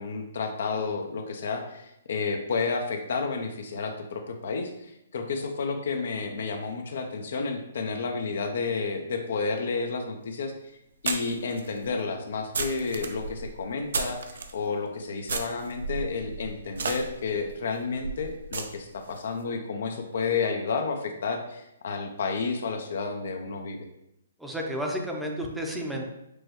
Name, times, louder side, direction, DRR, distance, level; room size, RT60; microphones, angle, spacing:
voice 1, 0.0-10.5 11.0-23.8, left 4 dB, 65° left, 5 dB, 0.5 m, -31 dB
sound 1, 10.0-10.1 11.0-14.5 15.2-19.2, right 4 dB, 70° right, 0.5 m, -34 dB
voice 2, 24.4-26.2, equal, 5° right, 0 dB, 0.6 m, -32 dB
6.1 x 2.2 x 3.0 m, 0.86 s
hypercardioid pair, 140°, 0 cm